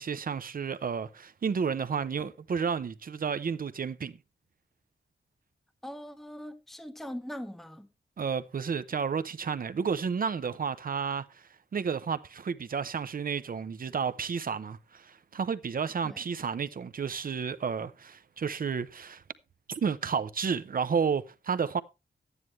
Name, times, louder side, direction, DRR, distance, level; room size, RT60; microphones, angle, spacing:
voice 1, 0.0-4.2 8.2-19.2 19.7-21.8, right 6 dB, 55° right, 0.7 m, -31 dB
voice 2, 5.8-7.9 16.0-16.2, equal, ahead, 0.9 m, -41 dB
12.5 x 9.7 x 3.1 m
wide cardioid pair, 180°, 18 cm